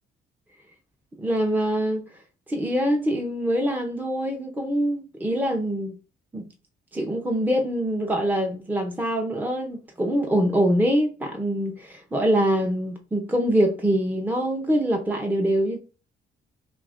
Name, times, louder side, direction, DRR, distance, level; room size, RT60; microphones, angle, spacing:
voice 1, 1.2-2.0 2.5-5.9 6.3-6.5 6.9-15.8, equal, 10° right, 0.6 m, -24 dB
2.9 x 2.4 x 3.5 m
cardioid pair, 90°, 20 cm